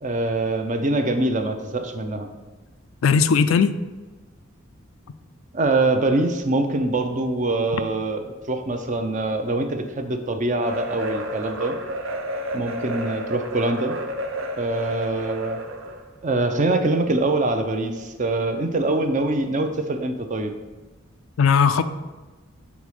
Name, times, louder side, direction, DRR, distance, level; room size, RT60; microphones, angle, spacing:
voice 1, 0.0-2.3 5.5-11.8 12.5-14.0 14.6-15.6 16.2-20.5, right 2 dB, 35° right, 6 dB, 0.6 m, -24 dB
voice 2, 3.0-3.7 21.4-21.8, left 6 dB, 80° left, 11 dB, 0.4 m, -17 dB
sound 1, 10.6-16.0, equal, 70° right, 0.8 m, -31 dB
7.1 x 4.1 x 4.8 m, 1.2 s
head